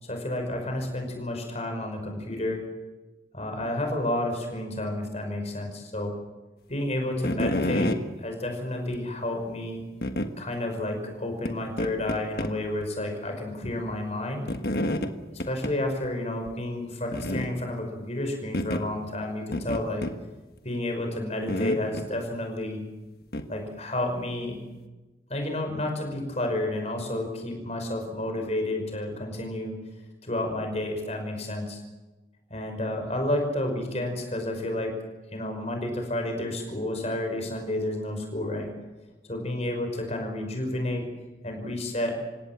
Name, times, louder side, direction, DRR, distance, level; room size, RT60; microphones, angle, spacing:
voice 1, 0.0-2.6 3.3-6.1 6.7-7.9 8.2-9.8 10.4-14.5 15.3-20.0 20.6-22.8 23.5-24.5 25.3-29.7 30.2-31.8 32.5-35.0 35.3-38.7 39.3-41.0 41.4-42.2, left 1 dB, 35° left, 4 dB, 5.5 m, -30 dB
sound 1, 7.2-8.0 8.9-9.0 10.0-10.3 11.4-11.5 11.8-12.5 12.8-12.9 14.5-15.1 15.4-15.7 16.0-16.1 16.5-16.6 17.1-17.5 18.5-18.8 19.5-20.2 21.5-22.1 23.3-23.5, left 1 dB, 55° left, 1.5 m, -28 dB
27.5 x 17.0 x 7.5 m, 1.2 s
head